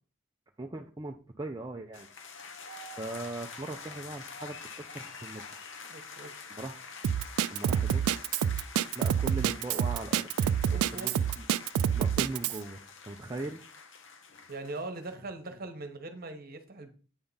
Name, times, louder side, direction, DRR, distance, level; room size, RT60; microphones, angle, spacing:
voice 1, 0.6-2.1 3.0-5.6 6.5-6.8 7.5-8.0 8.9-10.3 10.9-11.1 11.9-13.6, right 2 dB, 20° right, 1 dB, 0.4 m, -39 dB
sound 1, 1.9-15.1, left 4 dB, 55° left, 0.9 m, -46 dB
voice 2, 5.9-6.3 10.7-11.2 14.5-16.9, right 2 dB, 45° right, 7 dB, 1.1 m, -41 dB
Drum kit, 7.0-12.6, right 8 dB, 85° right, 0.3 m, -27 dB
8.8 x 3.7 x 5.5 m, 0.38 s
head